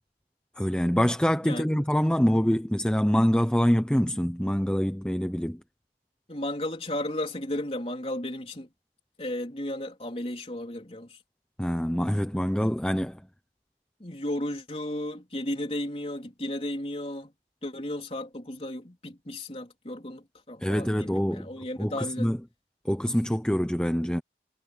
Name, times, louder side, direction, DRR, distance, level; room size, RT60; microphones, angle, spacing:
voice 1, 0.6-5.6 11.6-13.2 20.6-21.5 21.8-22.4 22.8-24.2, equal, 5° left, 0.7 m, -25 dB
voice 2, 6.3-8.7 9.2-11.2 14.0-17.3 17.6-22.3, left 1 dB, 35° left, 3.7 m, -34 dB
head